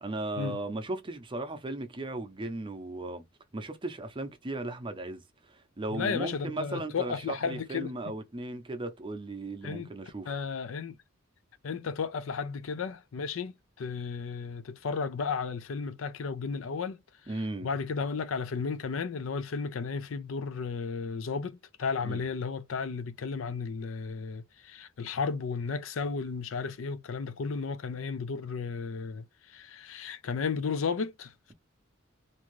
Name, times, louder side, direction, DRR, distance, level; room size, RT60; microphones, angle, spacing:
voice 1, 0.0-3.2 3.5-5.2 5.5-10.3 17.3-17.7 22.0-22.3, right 2 dB, 25° right, 0.6 m, -36 dB
voice 2, 5.9-7.9 9.6-9.9 10.3-11.0 11.6-17.0 17.6-29.2 29.5-31.5, left 5 dB, 70° left, 0.4 m, -34 dB
2.6 x 2.4 x 3.0 m
head